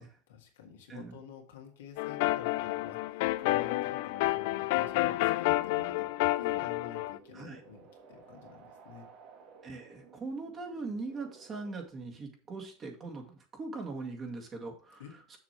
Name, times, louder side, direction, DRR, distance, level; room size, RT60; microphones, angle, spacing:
voice 1, 0.0-6.1 6.4-9.1 15.0-15.1, left 7 dB, 90° left, 1 dB, 1.9 m, -49 dB
voice 2, 0.9-1.2 7.3-7.6 9.6-15.0, right 3 dB, 30° right, 1 dB, 2.1 m, -40 dB
sound 1, 2.0-7.2, left 18 dB, 70° left, 0.3 m, -30 dB
sound 2, 3.1-11.9, right 5 dB, 60° right, 1.6 m, -57 dB
6.8 x 6.2 x 4.5 m, 0.41 s
supercardioid pair, 110°, 0 cm